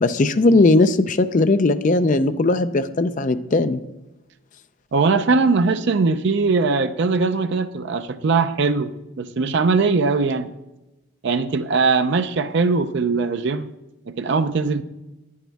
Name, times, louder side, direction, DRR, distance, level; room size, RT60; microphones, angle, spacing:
voice 1, 0.0-3.8, left 2 dB, 35° left, 11 dB, 0.4 m, -18 dB
voice 2, 4.9-8.9 9.2-10.5 11.2-13.7 14.1-14.8, right 4 dB, 55° right, 10 dB, 0.4 m, -20 dB
10.0 x 9.3 x 3.4 m, 1.0 s
head